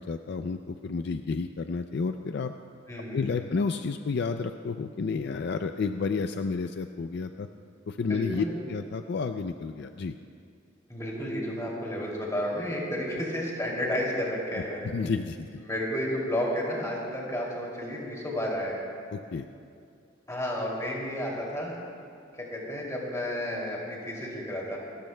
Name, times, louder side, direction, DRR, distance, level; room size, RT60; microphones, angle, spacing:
voice 1, 0.0-2.5 3.1-7.5 7.9-10.2 14.8-15.6 19.1-19.5, left 4 dB, 55° left, 8 dB, 0.4 m, -31 dB
voice 2, 2.9-3.5 8.0-8.6 10.9-14.9 15.6-18.9 20.3-21.8 22.3-24.8, equal, 15° left, -3 dB, 2.6 m, -32 dB
27.0 x 13.5 x 2.2 m, 2.4 s
head